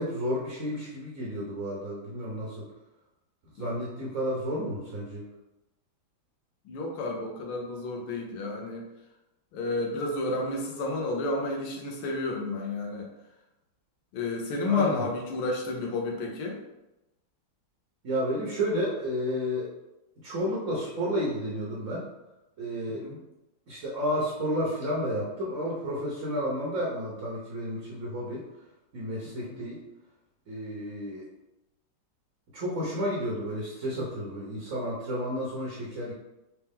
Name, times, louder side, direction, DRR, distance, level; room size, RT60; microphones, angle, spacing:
voice 1, 0.0-2.6 3.5-5.2 14.6-15.0 18.0-19.7 20.2-22.0 22.6-23.0 23.7-28.4 28.9-29.8 30.5-31.2 32.5-36.1, equal, 50° right, -4 dB, 1.1 m, -31 dB
voice 2, 6.6-8.8 9.5-13.1 14.1-16.6 22.9-23.2 29.3-29.5 33.9-34.1, left 2 dB, 85° left, 0 dB, 1.6 m, -31 dB
4.4 x 3.0 x 3.5 m, 0.95 s
omnidirectional pair, 2.2 m